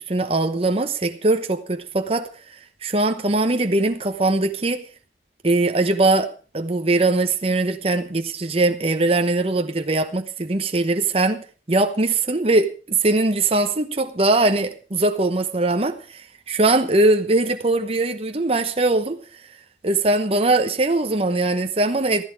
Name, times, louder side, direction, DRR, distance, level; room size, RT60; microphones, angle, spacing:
voice 1, 0.0-4.8 5.4-19.4 19.8-22.2, right 2 dB, 35° right, 1.0 m, -21 dB
15.5 x 14.0 x 4.8 m
head